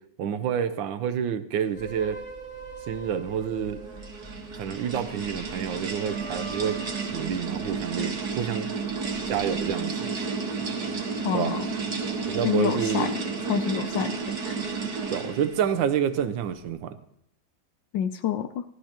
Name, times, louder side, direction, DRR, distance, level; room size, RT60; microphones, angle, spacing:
voice 1, 0.2-2.2 2.9-3.8 4.5-6.8 7.1-8.7 9.3-10.1 11.3-11.5 12.3-13.1 15.1-17.0, right 8 dB, 75° right, 10 dB, 1.5 m, -28 dB
sound 1, 1.8-8.4 8.9-9.7, right 2 dB, 15° right, 3.1 m, -43 dB
sound 2, 3.5-15.6, right 5 dB, 55° right, 2.0 m, -32 dB
voice 2, 11.2-11.6 12.4-13.1 13.5-14.1 14.4-14.6 17.9-18.6, left 9 dB, 75° left, 9 dB, 1.3 m, -27 dB
16.0 x 13.0 x 2.9 m, 0.75 s
omnidirectional pair, 2.2 m